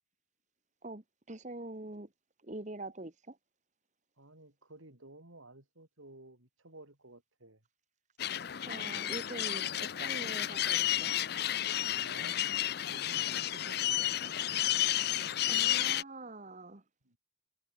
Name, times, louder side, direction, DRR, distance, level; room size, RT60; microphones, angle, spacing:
voice 1, 1.3-2.1 2.5-3.3 8.6-11.1 15.5-16.8, right 2 dB, 35° right, 1.4 m, -44 dB
voice 2, 4.2-7.6 11.9-12.4 12.9-14.5 17.0-17.2, right 2 dB, 85° right, 4.8 m, -54 dB
sound 1, 8.2-16.0, left 12 dB, 50° left, 0.6 m, -32 dB
head